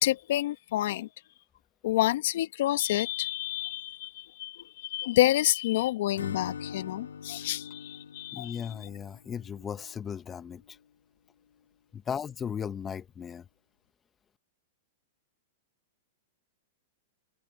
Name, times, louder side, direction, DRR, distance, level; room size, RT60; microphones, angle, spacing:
voice 1, 0.0-1.1 1.8-8.6, left 15 dB, 65° left, 1.6 m, -28 dB
Acoustic guitar / Strum, 6.1-10.1, left 7 dB, 90° left, 1.9 m, -42 dB
voice 2, 8.3-10.8 11.9-13.4, left 7 dB, 20° left, 1.0 m, -36 dB
hypercardioid pair, 120°, 0 cm